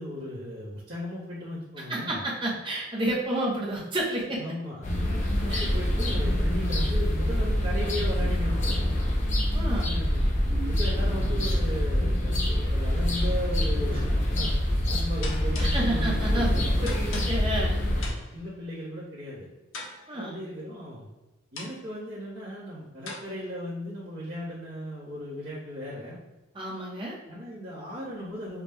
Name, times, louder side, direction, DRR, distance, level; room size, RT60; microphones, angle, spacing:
voice 1, 0.0-2.2 4.3-4.9 5.4-8.9 9.8-14.1 14.3-14.6 14.8-16.8 17.9-19.5 20.1-21.1 21.5-26.2 27.3-28.6, equal, 55° right, -10 dB, 1.3 m, -36 dB
voice 2, 1.9-4.4 5.5-5.7 9.5-10.0 15.6-18.1 20.1-20.4 26.5-27.2, right 1 dB, 25° right, -3 dB, 1.0 m, -30 dB
sound 1, 4.8-18.1, left 1 dB, 40° left, 0.8 m, -25 dB
Clicking Engine Cooldown, 13.9-14.2 15.2-16.0 16.9-17.7 18.0-18.5 19.7-20.3 21.6-21.9 23.1-23.2, left 3 dB, 90° left, 0.9 m, -41 dB
6.0 x 2.4 x 3.5 m, 1.1 s
head